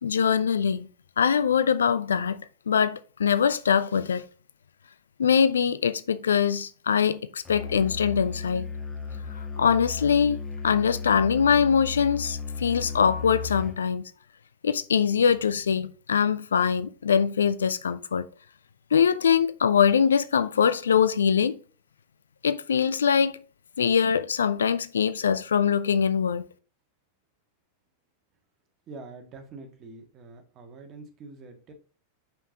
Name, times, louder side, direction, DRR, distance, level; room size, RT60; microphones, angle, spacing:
voice 1, 0.0-0.9 1.2-4.2 5.2-8.7 9.6-10.4 10.6-14.0 14.6-18.3 18.9-21.5 22.4-23.4 23.8-26.4, left 7 dB, 70° left, 0.4 m, -23 dB
Musical instrument, 7.5-13.8, left 5 dB, 15° left, 1.4 m, -35 dB
voice 2, 28.9-31.7, right 3 dB, 30° right, 1.7 m, -45 dB
6.8 x 5.6 x 2.9 m
figure-of-eight pair, 90°, 0 cm